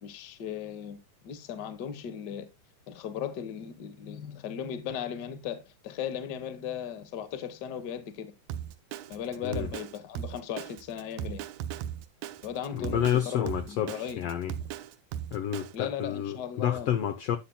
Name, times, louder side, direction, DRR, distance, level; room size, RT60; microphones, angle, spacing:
voice 1, 0.0-1.0 1.2-2.5 2.9-8.3 9.1-11.4 12.4-14.3 15.7-16.9, left 8 dB, 65° left, 1.0 m, -37 dB
Drum kit, 8.5-15.8, right 10 dB, 75° right, 1.8 m, -37 dB
voice 2, 12.7-14.5 15.3-17.4, left 10 dB, 80° left, 1.4 m, -29 dB
11.5 x 8.3 x 2.2 m
omnidirectional pair, 3.7 m